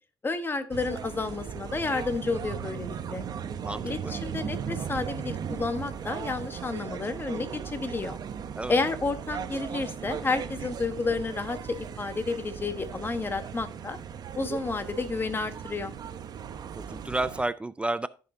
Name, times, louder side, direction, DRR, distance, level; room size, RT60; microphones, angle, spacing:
voice 1, 0.2-3.2 3.8-8.2 8.7-14.0 14.3-15.9, left 3 dB, 25° left, 1.1 m, -31 dB
sound 1, 0.7-17.4, right 7 dB, 55° right, 0.8 m, -37 dB
voice 2, 3.6-4.1 8.5-8.8 16.7-18.1, right 2 dB, 15° right, 0.3 m, -31 dB
14.5 x 5.7 x 2.7 m
cardioid pair, 105°, 8 cm